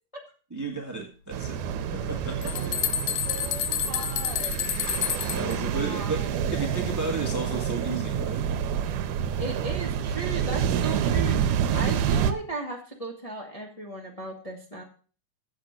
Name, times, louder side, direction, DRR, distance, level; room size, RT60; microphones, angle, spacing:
voice 1, 0.5-1.6 1.9-2.7 5.0-8.4 11.7-11.9, right 3 dB, 25° right, 2 dB, 0.4 m, -33 dB
sound 1, 1.3-12.3, right 8 dB, 75° right, 2.1 m, -28 dB
sound 2, 2.0-5.6, left 10 dB, 75° left, 1.9 m, -29 dB
voice 2, 2.4-2.8 3.2-4.7 5.7-6.4 9.4-14.8, right 2 dB, 20° left, 0 dB, 0.9 m, -37 dB
8.1 x 7.6 x 6.6 m, 0.39 s
omnidirectional pair, 3.9 m